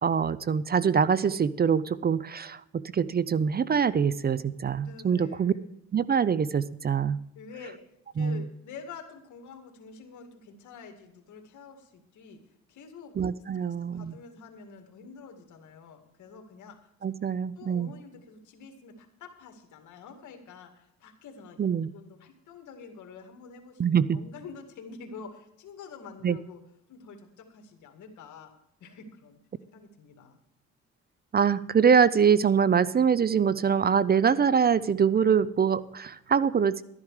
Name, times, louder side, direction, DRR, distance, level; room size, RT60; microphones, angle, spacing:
voice 1, 0.0-5.5 5.9-7.2 8.2-8.5 13.2-14.1 17.0-17.9 21.6-21.9 23.8-24.2 26.2-26.4 31.3-36.8, right 7 dB, 30° right, 18 dB, 0.5 m, -24 dB
voice 2, 4.8-5.7 7.3-7.8 8.1-12.4 12.7-13.2 13.5-16.8 17.6-23.8 24.1-26.6 26.9-28.5 28.8-29.4 29.7-30.4, left 5 dB, 75° left, 5 dB, 2.2 m, -47 dB
12.5 x 11.0 x 4.8 m, 0.78 s
cardioid pair, 90°, 30 cm